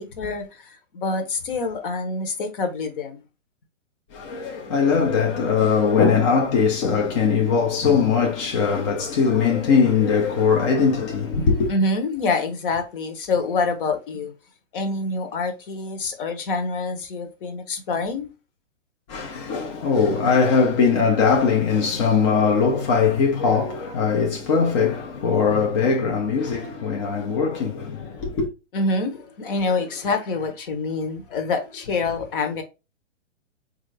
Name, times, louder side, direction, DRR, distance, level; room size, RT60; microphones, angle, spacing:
voice 1, 0.0-3.2 11.4-14.3 14.7-18.3 26.5-26.6 28.7-32.6, left 3 dB, 45° left, 0.9 m, -26 dB
voice 2, 4.1-11.7 19.1-28.5, left 5 dB, 25° left, 0.5 m, -20 dB
3.6 x 2.5 x 3.2 m
hypercardioid pair, 145°, 37 cm